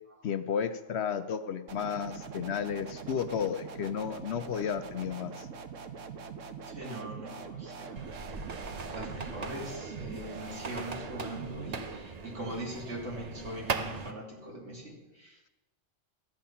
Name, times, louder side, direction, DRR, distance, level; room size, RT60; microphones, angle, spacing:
voice 1, 0.2-5.5, left 7 dB, 65° left, 11 dB, 0.8 m, -33 dB
sound 1, 1.7-12.0, right 6 dB, 90° right, 1.2 m, -43 dB
voice 2, 6.6-8.2 8.9-15.5, right 1 dB, 60° right, -2 dB, 3.2 m, -41 dB
sound 2, 8.0-14.1, right 4 dB, 40° right, 0.7 m, -39 dB
13.5 x 9.0 x 5.7 m, 1.1 s
omnidirectional pair, 1.3 m